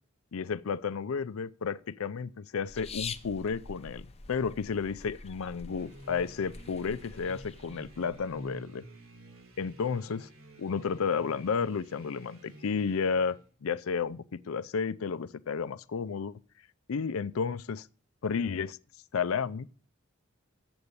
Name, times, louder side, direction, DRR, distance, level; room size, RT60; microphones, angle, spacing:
voice 1, 0.3-8.8 9.6-10.3 10.6-16.4 16.9-17.9 18.2-18.8 19.1-19.7, left 5 dB, 80° left, 0.5 m, -32 dB
sound 1, 2.7-8.5, left 5 dB, 30° left, 0.7 m, -45 dB
sound 2, 5.7-13.5, right 1 dB, 70° right, 1.9 m, -50 dB
8.1 x 7.9 x 8.6 m
head